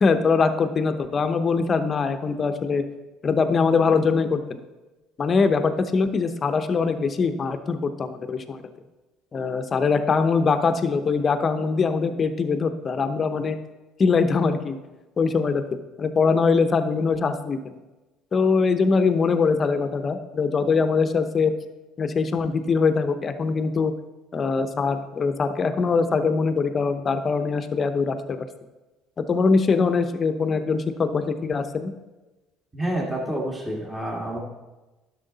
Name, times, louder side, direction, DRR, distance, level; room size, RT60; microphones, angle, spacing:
voice 1, 0.0-2.8 3.2-4.6 5.2-8.6 9.3-13.6 14.0-14.8 15.2-15.6 16.0-17.6 18.3-21.5 22.0-23.9 24.3-28.5 29.2-31.9, left 4 dB, 40° left, 9 dB, 0.8 m, -22 dB
voice 2, 32.7-34.4, right 1 dB, 10° right, -3 dB, 2.0 m, -28 dB
11.0 x 6.4 x 4.0 m, 1.1 s
hypercardioid pair, 70°, 0 cm